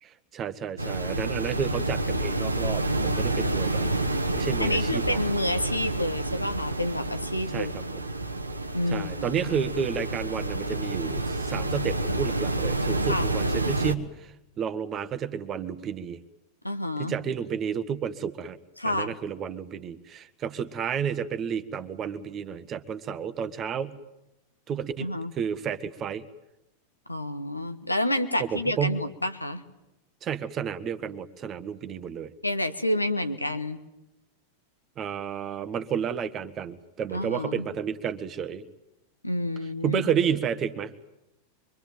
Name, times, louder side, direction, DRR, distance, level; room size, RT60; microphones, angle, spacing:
voice 1, 0.0-5.2 7.5-8.0 8.9-16.2 17.0-18.6 18.8-24.0 24.7-26.3 28.4-29.0 30.2-32.3 35.0-38.6 39.8-40.9, right 7 dB, 30° right, 11 dB, 1.5 m, -31 dB
sound 1, 0.8-13.9, right 2 dB, 85° right, 1.2 m, -29 dB
voice 2, 4.6-7.9 8.7-9.6 13.1-13.3 16.6-17.1 18.8-19.1 25.0-25.3 27.1-29.6 32.4-33.8 37.1-37.7 39.2-40.0, left 1 dB, 85° left, 9 dB, 1.4 m, -29 dB
25.0 x 24.0 x 9.3 m, 0.91 s
figure-of-eight pair, 90°, 0 cm